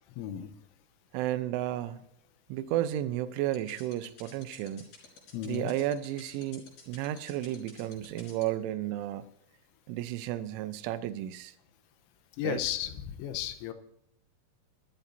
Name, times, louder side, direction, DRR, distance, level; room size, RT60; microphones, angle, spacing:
voice 1, 0.2-0.5 5.3-5.7 12.4-13.7, left 11 dB, 90° left, 10 dB, 3.6 m, -34 dB
voice 2, 1.1-2.0 2.5-4.9 5.4-9.3 9.9-11.5 12.4-12.6, right 13 dB, 80° right, 12 dB, 3.2 m, -33 dB
sound 1, 3.5-8.4, left 6 dB, 55° left, 5.6 m, -50 dB
24.0 x 12.0 x 2.8 m, 0.78 s
omnidirectional pair, 5.7 m